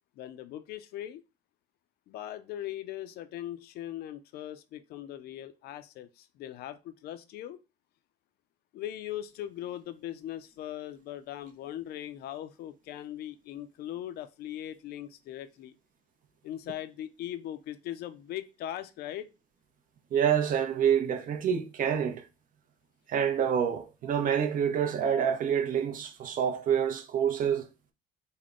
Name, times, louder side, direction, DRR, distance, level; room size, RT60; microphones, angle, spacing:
voice 1, 0.2-1.2 2.1-7.6 8.7-15.7 16.4-19.3, left 12 dB, 70° left, 0.4 m, -40 dB
voice 2, 20.1-22.2 23.1-27.7, right 8 dB, 55° right, 0.7 m, -27 dB
3.6 x 2.1 x 3.6 m
cardioid pair, 110°, 17 cm